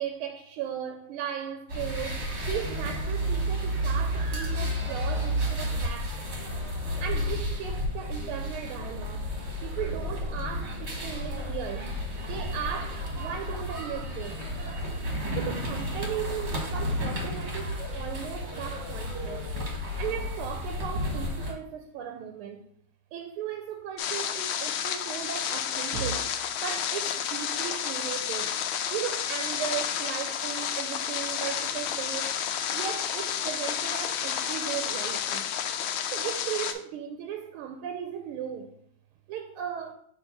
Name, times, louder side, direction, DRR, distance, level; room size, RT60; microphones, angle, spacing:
voice 1, 0.0-6.2 7.0-9.3 9.6-11.9 12.2-14.5 15.4-19.5 20.0-22.7 23.1-26.3 26.6-28.6 28.9-32.4 32.7-35.5 36.1-38.7 39.3-39.9, right 9 dB, 80° right, 1.5 m, -36 dB
sound 1, 1.7-21.5, equal, 40° right, 1.1 m, -32 dB
sound 2, 24.0-36.7, left 9 dB, 75° left, 1.3 m, -31 dB
6.4 x 2.8 x 5.7 m
omnidirectional pair, 2.4 m